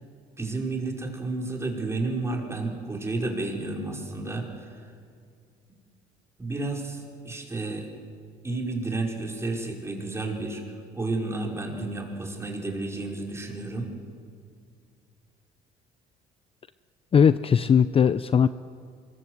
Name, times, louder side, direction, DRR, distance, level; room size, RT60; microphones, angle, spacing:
voice 1, 0.4-4.9 6.4-7.9 8.4-13.9, right 2 dB, 15° right, 0 dB, 5.3 m, -31 dB
voice 2, 17.1-18.5, left 7 dB, 35° left, 13 dB, 0.6 m, -19 dB
26.0 x 22.5 x 8.0 m, 2.2 s
cardioid pair, 110°, 17 cm